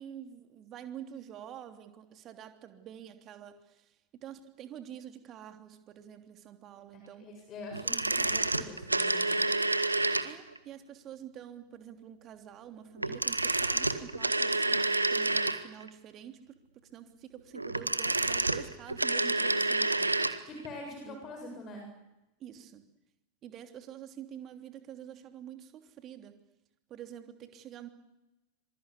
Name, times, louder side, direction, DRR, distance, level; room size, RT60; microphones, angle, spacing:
voice 1, 0.0-3.9 4.2-7.3 10.2-16.6 16.9-20.2 21.1-21.2 22.4-22.8 23.4-26.3 26.9-27.9, right 9 dB, 30° right, 7 dB, 3.1 m, -47 dB
voice 2, 6.9-9.4 20.4-21.9, left 2 dB, 30° left, 3 dB, 8.0 m, -44 dB
sound 1, 7.7-10.6 13.0-15.9 17.5-20.4 20.6-20.7, right 2 dB, 85° right, 1.6 m, -29 dB
26.5 x 26.0 x 8.4 m, 0.94 s
figure-of-eight pair, 90°, 0 cm